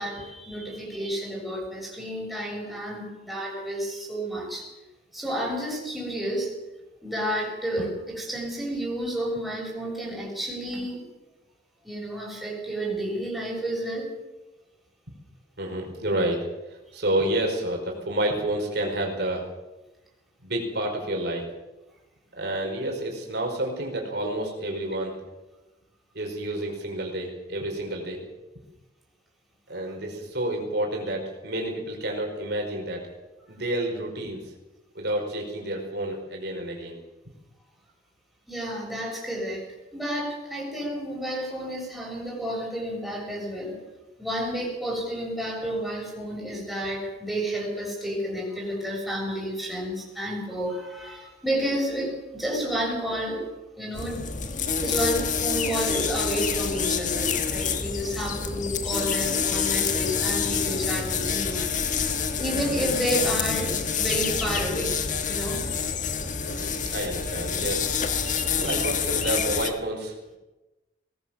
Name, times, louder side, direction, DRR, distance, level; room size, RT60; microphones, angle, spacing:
voice 1, 0.0-4.6 5.1-6.5 7.0-11.0 11.8-14.1 38.5-39.6 39.9-43.7 44.2-53.4 53.8-54.2 54.8-61.7 62.4-66.2 66.5-66.7 68.2-68.9, equal, ahead, -3 dB, 7.2 m, -31 dB
voice 2, 15.6-16.4 16.9-19.4 20.4-21.5 22.3-25.1 26.1-28.2 29.7-33.1 33.5-34.4 34.9-37.0 66.4-67.9 68.6-70.1, right 1 dB, 60° right, 1 dB, 4.9 m, -29 dB
sound 1, 53.9-69.7, left 6 dB, 40° left, 1.6 m, -27 dB
21.5 x 18.5 x 7.3 m, 1.0 s
head